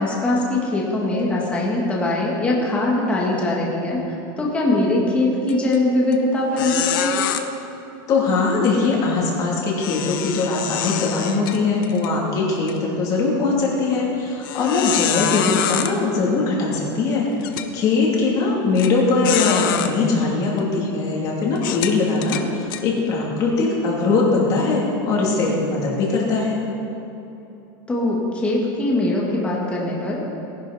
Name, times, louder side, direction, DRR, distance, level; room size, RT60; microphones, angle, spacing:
voice 1, 0.0-4.0 4.4-7.2 27.9-30.2, left 2 dB, 10° left, -4 dB, 1.7 m, -21 dB
sound 1, 5.5-5.8 6.1-6.2 6.6-7.4 9.8-12.1 12.6-12.7 13.3-13.4 14.4-15.9 16.8-16.9 17.4-17.7 18.8-18.9 19.2-19.9 20.6-20.7 21.6-22.8, left 10 dB, 70° left, 0.9 m, -25 dB
voice 2, 8.1-17.3 17.7-26.6, left 3 dB, 30° left, -3 dB, 2.7 m, -21 dB
18.5 x 11.0 x 4.2 m, 2.9 s
supercardioid pair, 175°, 12 cm